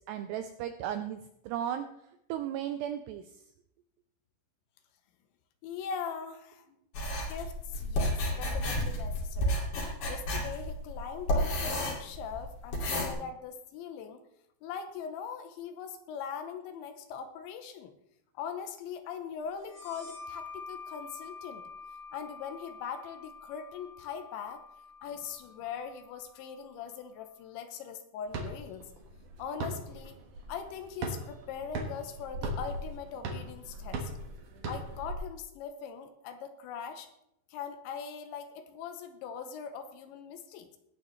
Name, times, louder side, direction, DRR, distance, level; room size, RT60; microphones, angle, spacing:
voice 1, 0.1-1.9 2.3-3.3, right 10 dB, 85° right, 8 dB, 2.4 m, -35 dB
voice 2, 5.6-6.8 7.3-9.6 10.1-14.2 14.6-17.9 18.3-21.6 22.1-24.6 25.0-28.9 29.4-30.2 30.5-34.1 34.7-37.1 37.5-40.8, left 7 dB, 80° left, 8 dB, 3.1 m, -41 dB
sound 1, 6.9-13.1, equal, 50° left, 3.6 m, -31 dB
sound 2, 19.6-26.9, left 4 dB, 15° left, 2.1 m, -48 dB
sound 3, 28.3-35.1, right 2 dB, 60° right, 2.2 m, -39 dB
19.0 x 8.7 x 3.2 m, 0.78 s
omnidirectional pair, 5.4 m